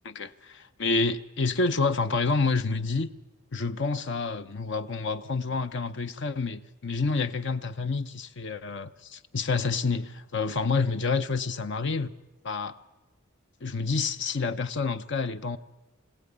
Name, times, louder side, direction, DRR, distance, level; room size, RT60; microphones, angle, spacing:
voice 1, 0.0-3.1 3.5-12.1 12.4-12.8 13.6-15.6, left 4 dB, 55° left, 0.8 m, -28 dB
23.5 x 16.5 x 9.8 m
head